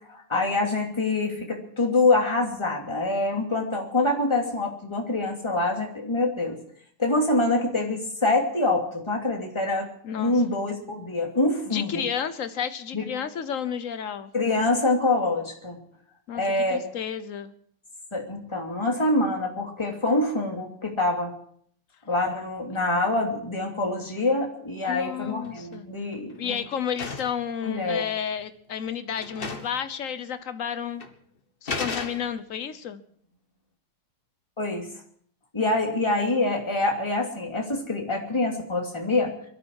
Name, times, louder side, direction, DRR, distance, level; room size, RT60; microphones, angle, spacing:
voice 1, 0.1-6.6 7.0-9.9 10.2-12.0 12.9-13.0 14.3-15.8 16.3-16.8 18.1-21.3 22.1-26.6 27.6-28.1 34.6-34.9 35.5-39.3, left 2 dB, 10° left, 0 dB, 2.9 m, -25 dB
voice 2, 10.0-10.4 11.7-14.3 16.3-16.4 16.7-17.5 24.9-25.9 26.4-31.0 31.6-33.0, left 8 dB, 50° left, 12 dB, 1.0 m, -31 dB
sound 1, 25.2-25.8 26.1-27.5 28.4-28.5 28.8-28.9 29.2-29.9 30.1-30.2 31.0-31.1 31.7-32.6, left 3 dB, 30° left, 1.3 m, -35 dB
23.0 x 13.0 x 4.8 m, 0.64 s
omnidirectional pair, 2.4 m